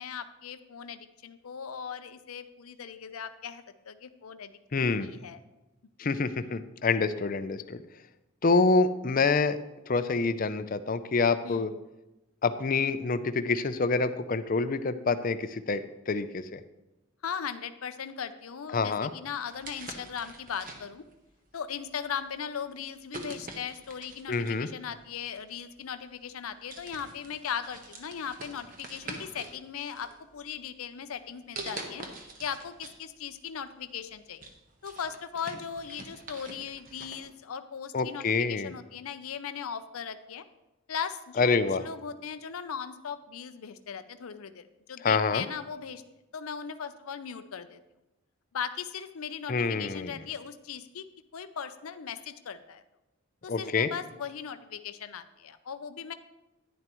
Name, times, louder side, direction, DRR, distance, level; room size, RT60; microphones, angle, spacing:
voice 1, 0.0-4.5 4.8-5.4 11.4-11.7 17.2-21.0 21.5-32.0 32.4-34.5 34.8-40.4 40.9-41.5 41.8-46.0 46.3-47.8 48.5-51.0 51.3-52.8 53.4-56.1, left 7 dB, 90° left, 11 dB, 0.5 m, -38 dB
voice 2, 4.7-5.1 6.0-7.8 8.4-9.6 9.9-11.7 12.4-16.6 18.7-19.1 24.3-24.7 37.9-38.7 41.4-41.9 45.0-45.4 49.5-50.2 53.5-53.9, left 4 dB, 40° left, 11 dB, 0.5 m, -27 dB
sound 1, 19.5-21.1 21.9-22.1 23.1-24.7 25.8-25.9 26.3-26.4 26.7-29.6 29.9-30.7 31.6-33.0 33.3-33.4 33.9-37.2, right 2 dB, 40° right, 1.1 m, -44 dB
11.0 x 10.5 x 3.0 m, 0.99 s
head